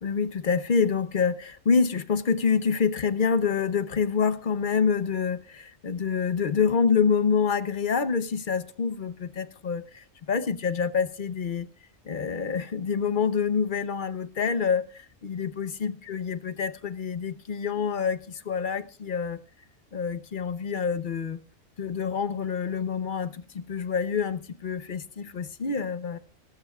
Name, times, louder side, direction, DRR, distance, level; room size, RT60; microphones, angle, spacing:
voice 1, 0.0-11.7 12.0-19.4 19.9-21.4 21.8-26.2, left 6 dB, 45° left, 0.8 m, -27 dB
20.5 x 13.5 x 2.3 m
omnidirectional pair, 1.4 m